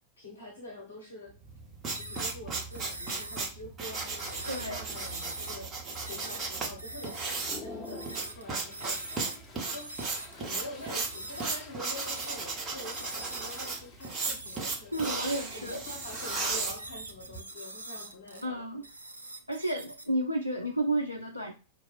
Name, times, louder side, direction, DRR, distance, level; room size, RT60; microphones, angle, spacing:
voice 1, 0.2-1.3 1.9-5.7 6.1-9.3 9.5-9.9 10.3-15.1 15.5-18.6, left 1 dB, 70° left, 0 dB, 0.8 m, -45 dB
sound 1, 1.4-17.4, right 4 dB, 25° right, 0.9 m, -35 dB
sound 2, 1.9-2.4 2.7-3.4 3.9-5.6 5.9-6.5 6.8-7.4 7.8-8.4 8.7-10.3 10.8-12.4 12.8-18.4 18.8-20.1, right 2 dB, 85° right, 0.4 m, -43 dB
Toilet flush, 2.1-2.2 2.7-2.9 3.2-3.8 4.3-4.4 4.7-5.4 5.9-6.0 6.5-6.6 7.1-19.0, left 3 dB, 25° left, 0.7 m, -51 dB
voice 2, 4.5-4.8 14.9-15.8 18.4-18.8 19.5-21.5, right 1 dB, 85° left, 3 dB, 0.4 m, -31 dB
4.5 x 2.3 x 2.4 m, 0.33 s
figure-of-eight pair, 90°, 0 cm